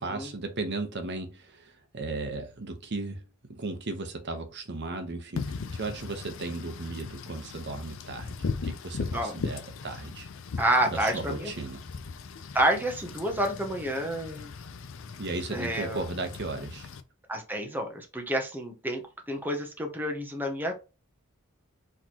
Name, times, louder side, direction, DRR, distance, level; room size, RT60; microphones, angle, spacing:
voice 1, 0.0-3.2 3.5-10.3 10.9-11.8 15.2-16.9, right 3 dB, 55° right, 1.0 m, -36 dB
Wind / Rain, 5.4-17.0, left 4 dB, 65° left, 0.5 m, -38 dB
voice 2, 10.6-11.5 12.5-14.5 15.5-16.0 17.3-19.0 19.3-20.7, right 1 dB, 10° right, 0.8 m, -29 dB
4.4 x 3.8 x 2.9 m
head